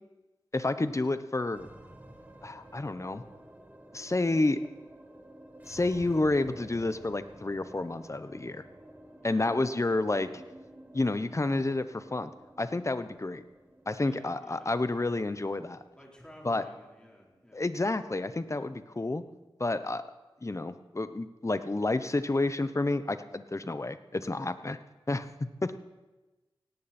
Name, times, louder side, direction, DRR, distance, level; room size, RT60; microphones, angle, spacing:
voice 1, 0.5-1.7 2.4-3.2 3.9-4.6 5.7-8.6 9.2-10.3 10.9-12.3 12.6-13.4 13.9-15.8 16.4-16.6 17.5-19.2 19.6-20.0 20.4-24.8 25.1-25.8, left 2 dB, 30° left, 12 dB, 0.9 m, -30 dB
sound 1, 1.5-20.0, right 1 dB, 20° right, 1.8 m, -52 dB
voice 2, 14.0-15.1 16.0-17.7 18.5-18.7, equal, 10° left, -2 dB, 4.2 m, -53 dB
17.5 x 17.0 x 4.4 m, 1.1 s
wide cardioid pair, 70°, 9 cm